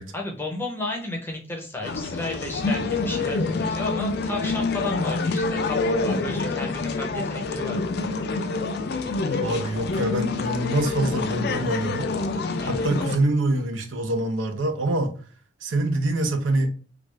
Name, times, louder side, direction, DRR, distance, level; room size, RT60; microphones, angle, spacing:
voice 1, 0.1-8.0 12.6-12.9, left 2 dB, 10° left, 0.6 m, -33 dB
sound 1, 1.8-13.2, left 3 dB, 55° left, 0.4 m, -27 dB
voice 2, 9.4-12.1 12.7-15.1 15.6-16.7, right 2 dB, 80° right, 0.6 m, -25 dB
3.3 x 2.4 x 3.1 m
head